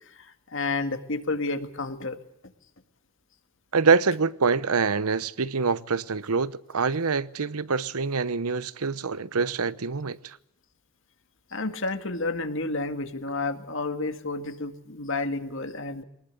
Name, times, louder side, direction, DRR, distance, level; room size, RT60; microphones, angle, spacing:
voice 1, 0.5-2.2 11.5-16.0, left 3 dB, 55° left, 2.0 m, -30 dB
voice 2, 3.7-10.4, right 5 dB, 80° right, 0.9 m, -25 dB
23.5 x 20.0 x 8.3 m
head